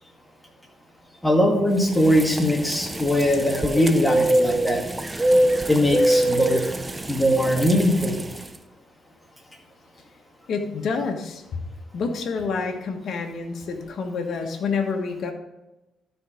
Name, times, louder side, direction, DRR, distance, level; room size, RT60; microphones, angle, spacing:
voice 1, 1.2-4.8 5.7-6.6 7.1-8.2, equal, 10° left, 1 dB, 1.9 m, -20 dB
sound 1, 1.8-8.5, right 1 dB, 15° right, 0.6 m, -24 dB
voice 2, 10.5-11.6 11.9-15.3, left 4 dB, 60° left, 4 dB, 1.4 m, -28 dB
12.0 x 4.6 x 5.0 m, 1.0 s
cardioid pair, 90°, 0 cm